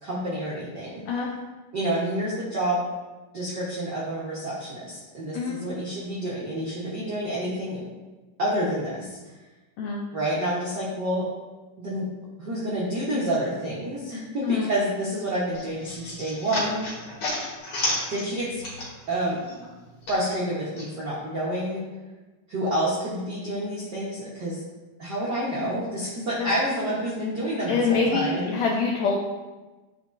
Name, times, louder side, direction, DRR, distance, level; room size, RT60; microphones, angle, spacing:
voice 1, 0.0-1.0 1.7-2.8 3.3-7.8 8.4-9.2 10.1-11.3 11.8-12.1 12.4-16.8 18.1-18.6 19.1-19.4 20.1-21.8 22.5-24.6 25.0-28.5, right 1 dB, 65° right, -8 dB, 1.0 m, -28 dB
sound 1, 15.5-19.2 19.5-20.9, left 2 dB, 50° left, 2.6 m, -32 dB
voice 2, 27.7-29.2, left 4 dB, 80° left, -1 dB, 1.6 m, -25 dB
9.4 x 4.5 x 2.6 m, 1.2 s
omnidirectional pair, 3.6 m